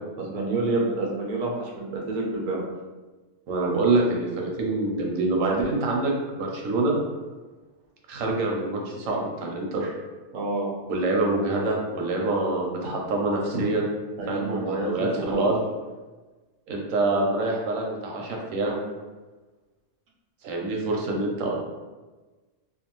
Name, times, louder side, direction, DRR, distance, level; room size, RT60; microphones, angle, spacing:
voice 1, 0.2-2.6 10.3-10.7 14.2-14.9 15.1-15.5, right 2 dB, 60° right, -2 dB, 0.4 m, -28 dB
voice 2, 3.5-7.0 8.1-9.9 10.9-13.9 14.3-15.6 16.7-18.8 20.4-21.5, right 2 dB, 80° right, -1 dB, 1.0 m, -26 dB
2.5 x 2.2 x 2.9 m, 1.3 s
omnidirectional pair, 1.4 m